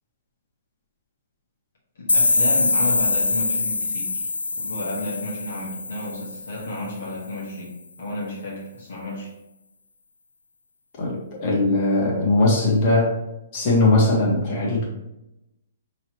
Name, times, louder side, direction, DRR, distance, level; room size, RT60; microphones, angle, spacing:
voice 1, 2.0-4.3 4.5-9.3, left 2 dB, 65° left, -4 dB, 1.3 m, -32 dB
sound 1, 2.1-6.8, left 3 dB, 80° left, 0.3 m, -23 dB
voice 2, 11.0-13.2 13.5-14.9, left 2 dB, 40° left, -3 dB, 1.6 m, -20 dB
5.6 x 3.1 x 3.0 m, 0.90 s
figure-of-eight pair, 120°, 0 cm